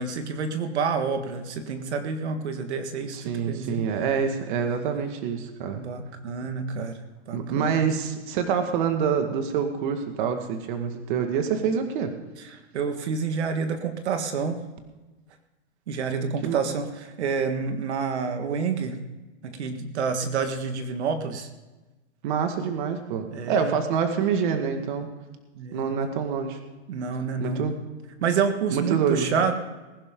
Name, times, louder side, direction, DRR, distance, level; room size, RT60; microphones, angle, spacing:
voice 1, 0.0-3.8 5.7-7.0 7.3-7.9 12.4-14.6 15.9-19.0 19.4-21.5 23.3-23.7 25.6-25.9 26.9-27.6 28.2-29.5, right 5 dB, 80° right, 7 dB, 1.8 m, -28 dB
voice 2, 3.1-5.8 7.3-12.1 16.4-16.6 22.2-25.1 25.7-26.6 27.4-27.8 28.7-29.3, right 7 dB, 45° right, 6 dB, 1.9 m, -26 dB
20.5 x 11.0 x 3.8 m, 1.2 s
supercardioid pair, 160°, 33 cm